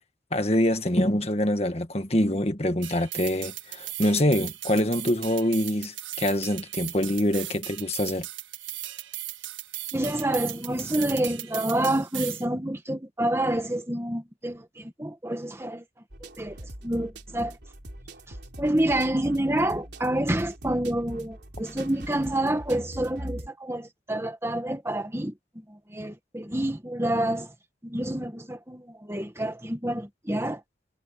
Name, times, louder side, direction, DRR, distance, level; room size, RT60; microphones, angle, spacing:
voice 1, 0.3-8.3, left 1 dB, 35° left, 1.6 m, -25 dB
sound 1, 2.8-12.4, right 14 dB, 85° right, 1.7 m, -37 dB
voice 2, 9.9-15.8 16.4-17.6 18.3-27.5 27.8-30.6, right 1 dB, 15° right, 1.5 m, -28 dB
sound 2, 16.1-23.5, right 1 dB, 65° right, 3.8 m, -42 dB
head